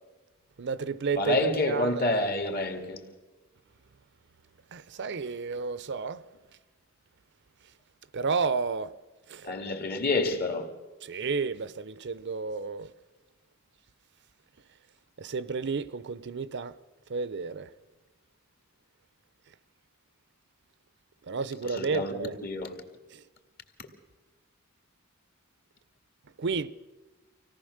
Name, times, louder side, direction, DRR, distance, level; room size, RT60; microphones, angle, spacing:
voice 1, 0.6-1.9 4.7-6.2 8.1-8.9 9.3-9.5 11.0-12.9 15.2-16.7 17.1-17.7 21.3-22.4 26.4-26.7, right 5 dB, 55° right, 0.6 m, -31 dB
voice 2, 1.2-3.0 9.4-10.7 21.6-22.8, left 2 dB, 50° left, 2.2 m, -28 dB
25.5 x 17.5 x 6.5 m
head